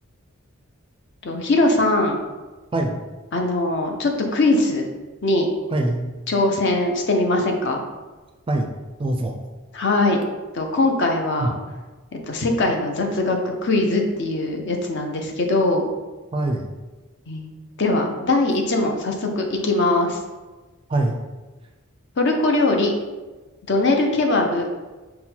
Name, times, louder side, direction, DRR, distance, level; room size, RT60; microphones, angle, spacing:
voice 1, 1.2-2.2 3.3-4.9 5.2-5.5 6.3-7.8 9.7-10.2 10.5-11.6 12.1-15.9 17.3-17.5 17.8-20.2 22.2-22.9 23.7-24.7, left 2 dB, 55° left, 3 dB, 0.6 m, -21 dB
voice 2, 5.7-6.1 8.5-8.7 9.0-9.3 11.4-11.5 16.3-16.7 20.9-21.2, right 2 dB, 25° right, 3 dB, 0.4 m, -23 dB
5.6 x 2.2 x 4.3 m, 1.2 s
head